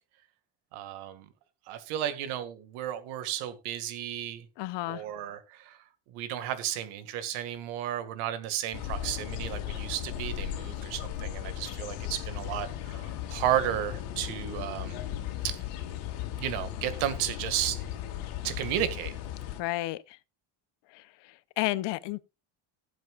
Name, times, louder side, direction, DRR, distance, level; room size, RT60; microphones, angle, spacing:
voice 1, 0.7-1.3 1.7-4.5 4.9-5.8 6.1-15.0 15.4-15.6 16.4-17.8 18.4-19.1, right 11 dB, 90° right, 2.0 m, -33 dB
voice 2, 4.6-5.0 19.6-20.0 21.6-22.2, left 18 dB, 60° left, 0.7 m, -30 dB
sound 1, 8.7-19.6, left 11 dB, 85° left, 2.6 m, -36 dB
19.0 x 7.7 x 2.4 m
cardioid pair, 170°, 49 cm